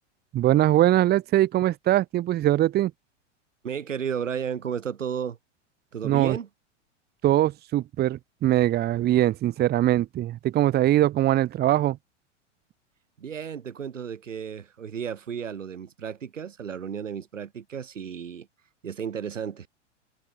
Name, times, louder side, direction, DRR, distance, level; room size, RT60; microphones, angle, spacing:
voice 1, 0.3-2.9 6.0-6.4 7.2-12.0, right 14 dB, 25° right, 1.0 m, -22 dB
voice 2, 3.6-5.4 5.9-6.5 13.2-18.5 18.8-19.7, right 7 dB, 85° right, 1.4 m, -33 dB
hypercardioid pair, 95°, 37 cm